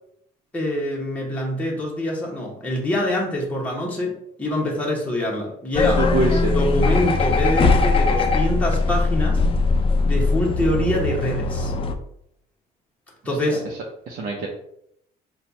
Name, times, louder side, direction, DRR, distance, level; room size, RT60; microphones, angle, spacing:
voice 1, 0.5-9.4 10.0-11.7 13.2-13.6, left 1 dB, 10° left, -3 dB, 1.0 m, -25 dB
sound 1, 5.7-12.0, left 3 dB, 30° left, 0.5 m, -20 dB
voice 2, 5.8-6.6 13.7-13.8 14.1-14.5, right 2 dB, 55° right, -1 dB, 0.8 m, -24 dB
4.2 x 2.3 x 4.0 m, 0.73 s
cardioid pair, 110°, 17 cm